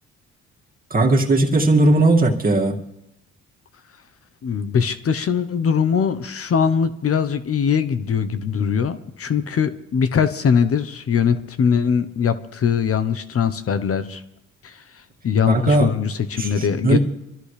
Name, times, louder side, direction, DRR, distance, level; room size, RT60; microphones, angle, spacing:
voice 1, 0.9-2.8 15.5-15.9 16.4-17.0, right 2 dB, 30° right, 0 dB, 2.2 m, -17 dB
voice 2, 4.4-14.2 14.6-14.8 15.2-17.0, left 7 dB, 50° left, 12 dB, 0.9 m, -21 dB
25.0 x 13.5 x 3.3 m, 0.85 s
cardioid pair, 90°, 30 cm